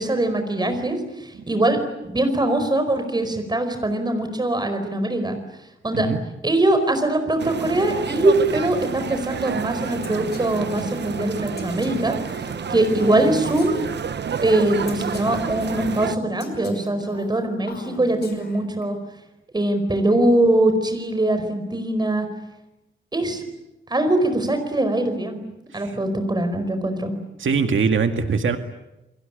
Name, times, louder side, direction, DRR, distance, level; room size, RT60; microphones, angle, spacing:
voice 1, 0.0-1.8 2.1-5.4 5.8-6.1 6.4-12.2 12.7-13.9 14.4-19.0 19.5-22.3 23.1-23.4 23.9-25.4 25.7-27.1, right 1 dB, 20° right, 7 dB, 4.8 m, -22 dB
sound 1, 7.4-16.2, right 7 dB, 60° right, 1.0 m, -30 dB
Female speech woman speaking, 10.0-14.3 14.9-18.8, left 3 dB, 55° left, 5.6 m, -39 dB
voice 2, 27.4-28.6, right 5 dB, 80° right, 6 dB, 2.0 m, -22 dB
29.5 x 22.5 x 8.8 m, 0.94 s
wide cardioid pair, 175°, 20 cm